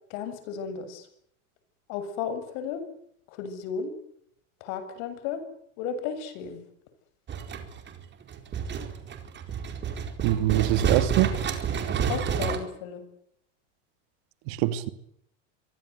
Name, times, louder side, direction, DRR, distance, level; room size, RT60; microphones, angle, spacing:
voice 1, 0.1-1.1 1.9-2.9 3.3-3.9 4.6-5.4 5.8-6.6 12.1-13.0, left 7 dB, 60° left, 7.5 m, -34 dB
sound 1, 7.3-12.6, right 7 dB, 30° right, 4.5 m, -29 dB
voice 2, 10.2-11.3 14.5-14.9, right 15 dB, 60° right, 2.8 m, -24 dB
25.0 x 23.0 x 8.3 m
supercardioid pair, 125°, 38 cm